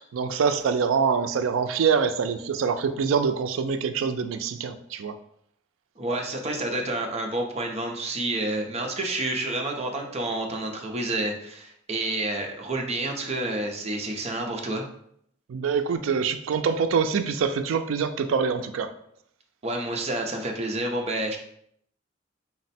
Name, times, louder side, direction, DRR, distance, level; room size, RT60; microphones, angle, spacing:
voice 1, 0.0-5.2 15.5-18.9, right 6 dB, 85° right, 9 dB, 0.3 m, -25 dB
voice 2, 6.0-14.9 19.6-21.4, right 2 dB, 35° right, 2 dB, 0.6 m, -29 dB
4.2 x 2.1 x 4.1 m, 0.70 s
head